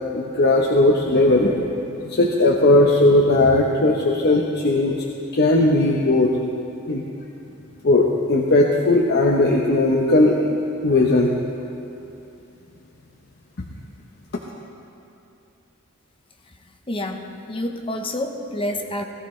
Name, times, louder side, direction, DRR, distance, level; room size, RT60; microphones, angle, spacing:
voice 1, 0.1-1.5 2.0-5.0 5.3-6.3 6.9-7.0 7.8-11.3, left 2 dB, 50° left, -1 dB, 0.9 m, -17 dB
voice 2, 16.9-19.0, left 1 dB, 25° left, 3 dB, 1.0 m, -28 dB
19.0 x 14.0 x 3.2 m, 2.6 s
head